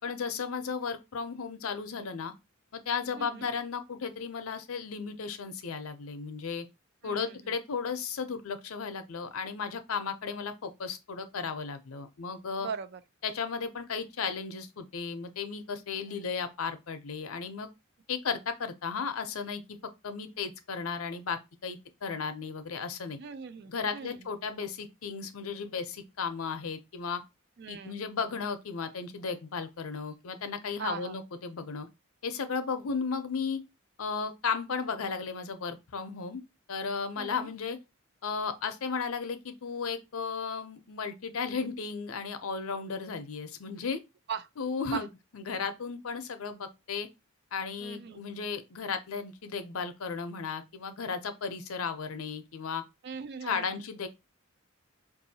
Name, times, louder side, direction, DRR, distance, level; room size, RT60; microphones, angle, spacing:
voice 1, 0.0-2.3 2.7-6.7 7.0-12.7 13.2-17.7 18.1-19.6 20.0-23.2 23.7-27.2 27.7-31.9 32.2-33.6 34.0-36.4 36.7-37.8 38.2-44.0 44.6-45.1 45.3-47.1 47.5-52.8 53.4-54.1, left 5 dB, 85° left, 0.6 m, -35 dB
voice 2, 3.2-3.5 7.0-7.5 12.6-13.0 16.1-16.2 23.2-24.2 27.6-28.0 30.8-31.2 37.2-37.5 44.3-44.5 44.8-45.1 47.8-48.2 53.0-53.8, right 6 dB, 50° right, 0.4 m, -40 dB
4.6 x 2.7 x 2.7 m
head